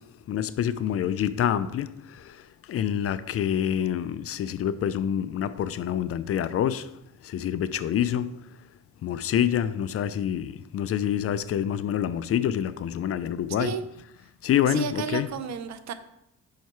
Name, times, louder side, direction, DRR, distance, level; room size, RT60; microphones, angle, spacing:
voice 1, 0.3-1.9 2.7-6.9 7.3-8.3 9.0-13.7 14.4-15.3, left 10 dB, 50° left, 0.4 m, -26 dB
voice 2, 14.7-15.9, right 8 dB, 65° right, 0.7 m, -32 dB
5.6 x 4.6 x 4.6 m
cardioid pair, 90°, 30 cm